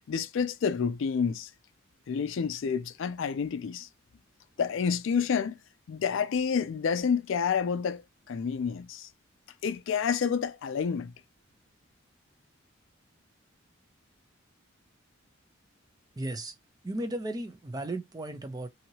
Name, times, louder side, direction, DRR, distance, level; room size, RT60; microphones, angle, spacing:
voice 1, 0.1-1.5 2.1-3.9 4.6-5.5 5.9-8.0 8.3-9.1 9.6-11.1, left 6 dB, 65° left, 0.4 m, -29 dB
voice 2, 16.2-16.5 16.8-18.7, right 1 dB, 20° right, 0.5 m, -35 dB
2.8 x 2.7 x 2.8 m
head